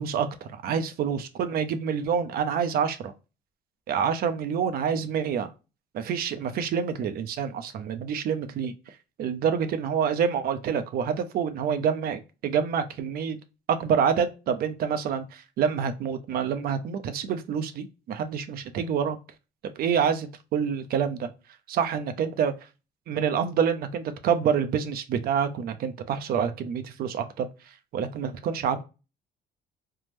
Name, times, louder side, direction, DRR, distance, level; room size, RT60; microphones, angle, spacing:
voice 1, 0.0-3.1 3.9-5.5 5.9-8.7 9.2-13.4 13.7-19.2 19.8-21.3 21.7-22.5 23.1-27.5 27.9-28.8, right 7 dB, 65° right, 0.5 m, -27 dB
3.4 x 2.0 x 2.9 m
cardioid pair, 110°, 17 cm